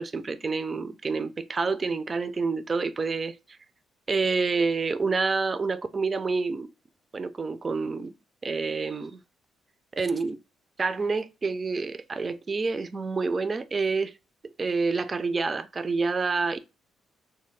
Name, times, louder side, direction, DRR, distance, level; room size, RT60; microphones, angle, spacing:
voice 1, 0.0-3.6 4.1-6.7 7.1-8.1 8.4-9.2 10.0-10.4 10.8-14.2 14.6-16.6, right 4 dB, 35° right, 0.4 m, -28 dB
3.2 x 2.0 x 3.1 m
cardioid pair, 90°, 0 cm